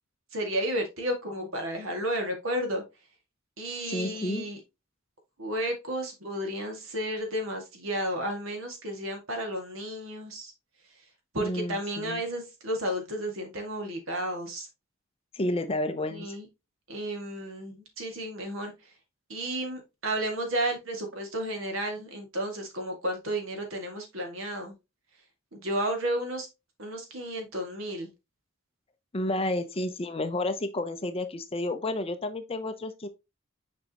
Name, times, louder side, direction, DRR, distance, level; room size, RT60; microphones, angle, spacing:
voice 1, 0.3-2.8 3.6-4.6 5.4-10.5 11.3-14.7 16.1-16.5 16.9-18.7 19.3-24.7 25.5-26.5 26.8-28.1, right 1 dB, 75° right, 2.0 m, -32 dB
voice 2, 3.9-4.5 11.4-12.2 15.3-16.4 29.1-33.1, left 1 dB, 30° left, 0.6 m, -31 dB
6.5 x 5.2 x 2.9 m
head